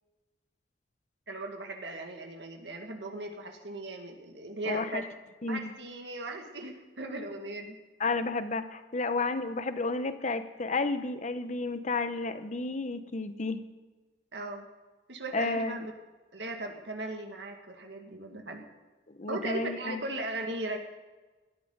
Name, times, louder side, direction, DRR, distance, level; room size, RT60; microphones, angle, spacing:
voice 1, 1.3-5.1 5.5-7.8 14.3-14.7 15.1-15.9 16.3-18.6 19.3-20.8, right 2 dB, 80° right, 3 dB, 2.1 m, -38 dB
voice 2, 4.7-5.0 5.4-5.7 8.0-13.6 15.3-15.8 19.1-20.0, left 3 dB, 45° left, 11 dB, 0.9 m, -31 dB
18.0 x 13.0 x 4.0 m, 1.2 s
head